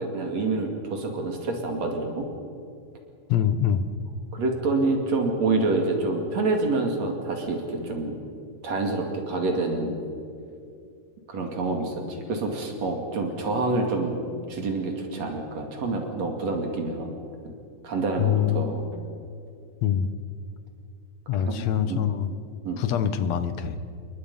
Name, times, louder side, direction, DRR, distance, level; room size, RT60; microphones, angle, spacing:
voice 1, 0.0-2.3 4.3-8.2 8.6-10.0 11.3-14.2 14.5-17.1 17.8-18.8 21.4-22.0 22.6-22.8, right 3 dB, 60° right, 3 dB, 3.6 m, -27 dB
voice 2, 3.3-3.9 18.2-18.7 19.8-20.1 21.3-22.3 22.8-23.8, left 9 dB, 70° left, 11 dB, 2.1 m, -24 dB
28.5 x 22.0 x 5.5 m, 2.4 s
omnidirectional pair, 3.4 m